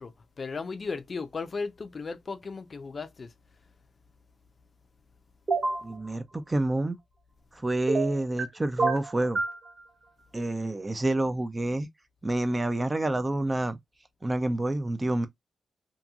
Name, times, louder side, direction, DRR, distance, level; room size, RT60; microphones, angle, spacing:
voice 1, 0.0-3.3, left 4 dB, 50° left, 0.5 m, -36 dB
sound 1, 5.5-5.8 7.9-8.5 8.8-9.6, right 3 dB, 50° right, 1.0 m, -27 dB
voice 2, 5.8-7.0 7.5-9.4 10.3-11.9 12.2-13.8 14.2-15.3, right 2 dB, 25° right, 0.6 m, -28 dB
2.8 x 2.6 x 2.3 m
cardioid pair, 60°, 0 cm